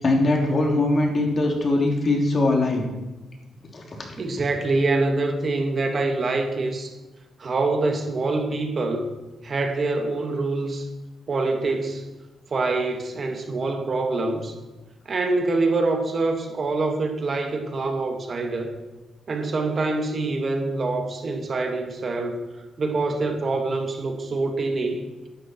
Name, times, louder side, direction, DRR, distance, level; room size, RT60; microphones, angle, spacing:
voice 1, 0.0-2.8 3.7-3.8 4.4-4.5, left 2 dB, 40° left, 1 dB, 3.3 m, -21 dB
voice 2, 4.2-7.0 7.4-9.1 9.4-10.9 11.3-12.0 12.5-14.6 15.1-18.7 19.3-22.4 22.8-25.0, right 3 dB, 45° right, 4 dB, 2.1 m, -25 dB
14.0 x 12.0 x 4.6 m, 1.1 s
cardioid pair, 90°, 0 cm